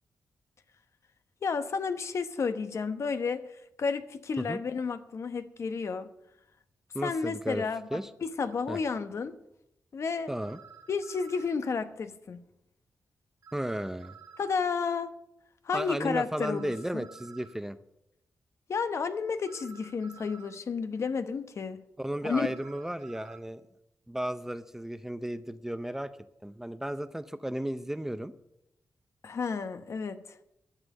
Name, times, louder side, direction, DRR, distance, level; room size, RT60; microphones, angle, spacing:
voice 1, 1.4-6.1 7.0-9.4 9.9-10.3 10.9-12.4 14.4-15.1 15.6-17.1 18.7-21.8 22.2-22.5 29.2-30.4, left 5 dB, 55° left, 1.0 m, -32 dB
voice 2, 6.9-7.6 7.9-8.1 8.7-8.8 10.3-10.6 13.5-14.1 15.7-17.8 22.0-23.6 24.1-26.1 26.4-28.3, right 1 dB, 5° right, 0.6 m, -34 dB
sound 1, 8.5-8.6 10.4-11.6 13.4-14.6 16.4-17.6 19.4-20.6 22.4-23.4, right 6 dB, 70° right, 3.1 m, -52 dB
11.5 x 7.3 x 8.9 m
wide cardioid pair, 110°, 6 cm